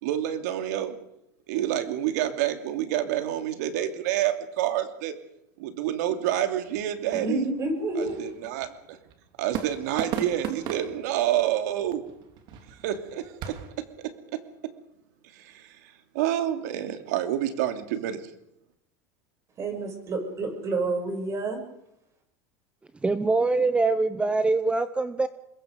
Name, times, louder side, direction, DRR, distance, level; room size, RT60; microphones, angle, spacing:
voice 1, 0.0-1.0 1.5-5.1 5.6-7.5 7.9-9.0 9.4-12.0 12.8-14.7 15.3-18.2, right 12 dB, 75° right, 7 dB, 2.9 m, -28 dB
sound 1, 6.6-13.7, right 9 dB, 55° right, 3.3 m, -39 dB
voice 2, 7.1-8.2 19.6-21.6, right 2 dB, 35° right, 4 dB, 7.4 m, -29 dB
voice 3, 23.0-25.3, right 3 dB, 10° right, 13 dB, 0.9 m, -23 dB
27.0 x 22.0 x 5.3 m, 0.81 s
supercardioid pair, 115°, 9 cm